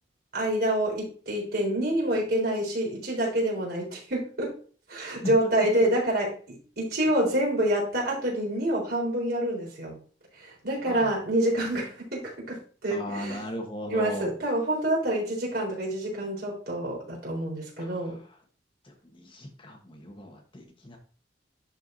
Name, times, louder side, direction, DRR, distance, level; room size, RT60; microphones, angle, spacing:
voice 1, 0.3-4.5 4.9-10.0 10.3-13.4 13.9-18.2, right 1 dB, 60° right, -3 dB, 4.1 m, -27 dB
voice 2, 5.1-5.5 10.9-11.1 12.9-14.3 17.8-18.2 18.8-21.0, left 1 dB, 30° left, 2 dB, 1.2 m, -37 dB
11.0 x 4.6 x 2.7 m, 0.42 s
head